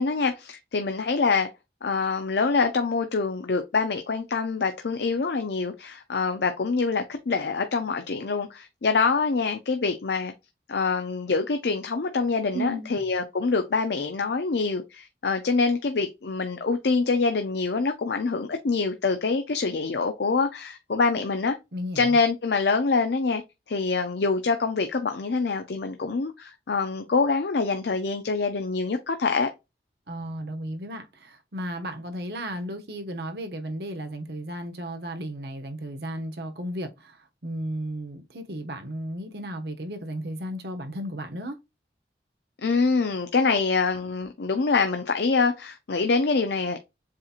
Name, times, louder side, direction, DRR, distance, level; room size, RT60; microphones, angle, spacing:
voice 1, 0.0-1.5 1.8-10.3 10.7-21.6 21.9-23.4 23.7-29.5 42.6-46.8, left 4 dB, 75° left, 0.6 m, -25 dB
voice 2, 12.5-12.9 21.7-22.2 30.1-41.6, right 1 dB, 65° right, 1.0 m, -34 dB
7.4 x 2.9 x 2.5 m
head